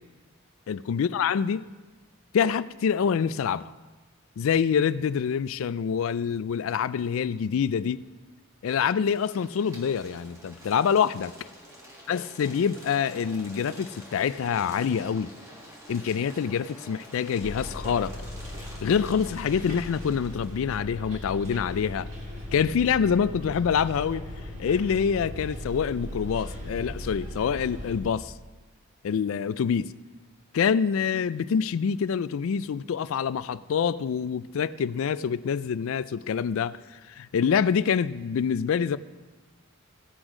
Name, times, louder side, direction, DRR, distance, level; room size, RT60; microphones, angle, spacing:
voice 1, 0.7-1.6 2.3-3.7 4.4-8.0 8.6-11.3 12.1-15.3 15.9-18.1 18.8-22.1 22.5-24.3 24.6-28.3 29.0-29.9 30.5-39.0, left 7 dB, 70° left, 0.3 m, -26 dB
sound 1, 9.1-20.6, equal, 15° right, 1.5 m, -48 dB
Bus, 17.4-28.0, left 1 dB, 30° right, 1.9 m, -38 dB
16.5 x 6.2 x 5.0 m
head